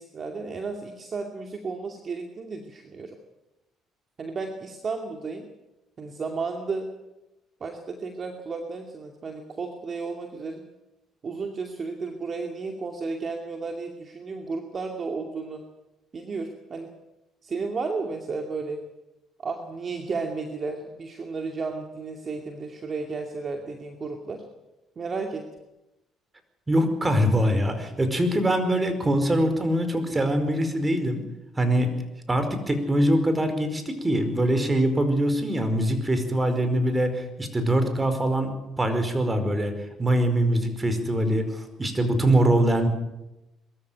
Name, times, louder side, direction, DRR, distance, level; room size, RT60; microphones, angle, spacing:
voice 1, 0.0-3.2 4.2-5.5 6.0-6.9 7.6-10.6 11.2-15.6 16.1-16.9 17.4-18.8 19.4-24.4 25.0-25.5, right 4 dB, 45° right, 4 dB, 2.5 m, -33 dB
voice 2, 26.7-31.2 31.6-31.9 32.3-38.5 38.8-39.7 40.0-42.9, right 1 dB, 20° right, 9 dB, 4.9 m, -23 dB
22.0 x 14.0 x 9.2 m, 0.96 s
hypercardioid pair, 60°, 0 cm